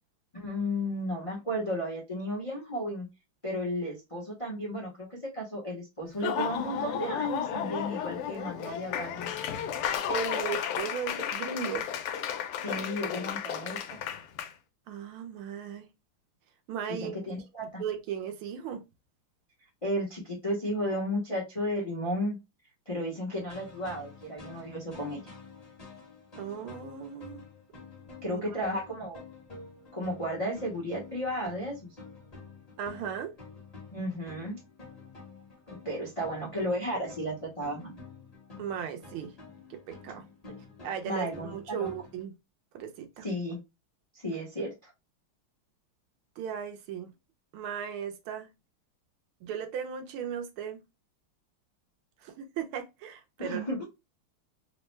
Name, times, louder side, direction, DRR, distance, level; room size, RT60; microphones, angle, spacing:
voice 1, 0.3-3.1 3.4-9.3 12.6-14.0 16.9-17.8 19.8-22.4 22.9-25.2 28.2-29.2 29.9-31.9 33.9-34.6 35.8-38.0 41.0-41.9 43.2-43.6 44.1-44.9 53.4-53.8, equal, 50° left, 0.3 m, -33 dB
Laughter / Applause, 6.1-14.5, left 9 dB, 85° left, 1.5 m, -33 dB
voice 2, 10.1-11.9 14.9-15.9 16.7-17.1 17.8-18.8 26.4-27.4 28.3-28.4 32.8-33.3 38.6-39.3 39.7-40.2 40.8-42.3 42.7-43.2 46.4-47.1 47.5-48.5 49.4-50.8 52.2-53.6, right 8 dB, 80° right, 1.5 m, -36 dB
sound 1, 23.3-42.2, left 4 dB, 20° left, 1.1 m, -49 dB
3.8 x 2.1 x 3.0 m
omnidirectional pair, 2.4 m